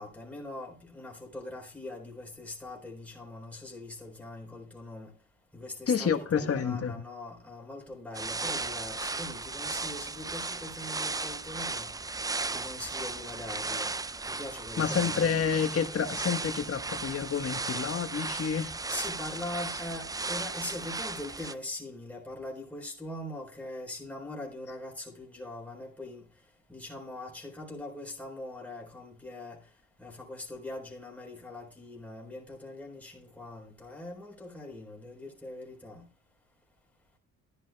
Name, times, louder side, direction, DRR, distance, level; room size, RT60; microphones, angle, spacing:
voice 1, 0.0-5.1 5.5-11.9 12.5-13.9 14.3-15.3 18.9-26.3 26.7-29.6 30.0-36.0, left 2 dB, 5° left, 4.0 m, -42 dB
voice 2, 5.9-6.9 14.8-18.7, left 7 dB, 45° left, 1.4 m, -29 dB
sound 1, 8.1-21.5, right 3 dB, 10° right, 0.4 m, -35 dB
12.5 x 10.0 x 2.3 m
supercardioid pair, 75°, 34 cm